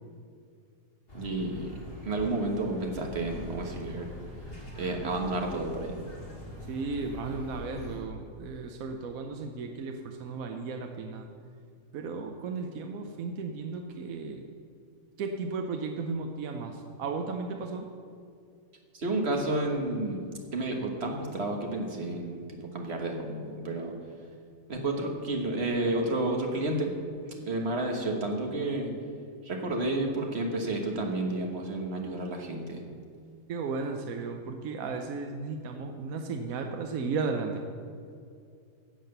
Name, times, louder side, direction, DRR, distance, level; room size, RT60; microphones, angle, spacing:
sound 1, 1.1-8.0, left 1 dB, 40° left, 2.3 m, -43 dB
voice 1, 1.1-1.7 2.0-4.1 4.7-5.9 18.9-20.2 20.5-22.4 22.7-23.9 24.7-26.9 27.4-28.9 29.4-32.8, right 2 dB, 45° right, 2 dB, 1.6 m, -31 dB
voice 2, 6.7-11.3 11.9-14.4 15.2-17.9 33.5-37.6, right 4 dB, 75° right, 4 dB, 1.2 m, -35 dB
11.5 x 7.6 x 6.7 m, 2.4 s
omnidirectional pair, 1.5 m